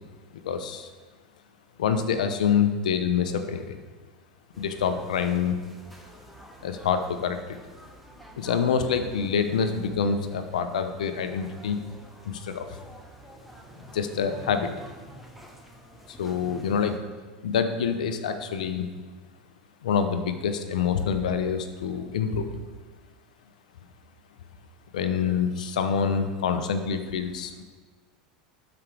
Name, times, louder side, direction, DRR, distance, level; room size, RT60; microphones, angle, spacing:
voice 1, 0.4-0.9 1.8-3.8 4.6-5.6 6.6-7.6 8.4-11.8 12.2-12.8 13.9-14.7 16.1-17.0 17.4-18.9 19.8-22.6 24.9-27.6, left 6 dB, 80° left, 9 dB, 0.7 m, -26 dB
sound 1, 4.5-17.0, right 1 dB, ahead, 1.3 m, -48 dB
12.5 x 5.1 x 3.4 m, 1.3 s
hypercardioid pair, 95°, 4 cm